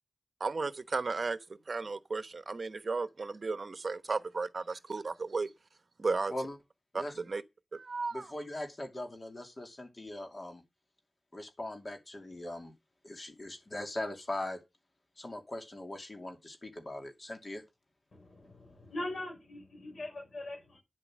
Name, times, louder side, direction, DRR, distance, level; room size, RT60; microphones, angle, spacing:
voice 1, 0.4-1.4 1.7-5.5 6.0-6.3 6.9-7.4 7.7-8.3, right 4 dB, 55° right, 1.0 m, -34 dB
voice 2, 8.1-10.6 11.3-12.7 13.0-14.6 15.2-17.6, left 1 dB, 40° left, 2.7 m, -40 dB
voice 3, 18.1-20.8, left 1 dB, 70° left, 5.4 m, -41 dB
10.0 x 7.8 x 6.2 m
wide cardioid pair, 105°, 0 cm